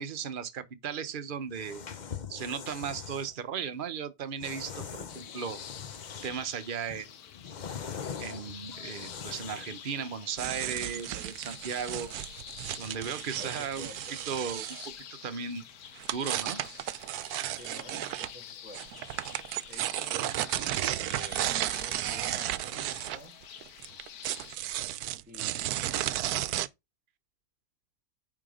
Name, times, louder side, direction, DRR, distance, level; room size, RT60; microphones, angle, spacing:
voice 1, 0.0-1.8 2.3-5.6 6.2-7.1 8.2-12.1 12.8-13.9 14.3-14.7 15.2-15.6 16.1-16.6 17.4-17.5, right 6 dB, 40° right, 1.0 m, -36 dB
sound 1, 1.5-3.3 4.4-6.5 6.9-9.8, left 7 dB, 40° left, 0.7 m, -42 dB
sound 2, 5.1-24.6, left 9 dB, 90° left, 1.4 m, -48 dB
sound 3, 10.4-14.9 16.0-18.3 18.7-26.7, right 13 dB, 80° right, 1.1 m, -33 dB
voice 2, 11.9-12.2 13.4-14.2 17.5-18.8 19.7-23.4 25.2-26.5, left 1 dB, 5° right, 2.3 m, -50 dB
8.9 x 3.8 x 5.0 m
omnidirectional pair, 1.6 m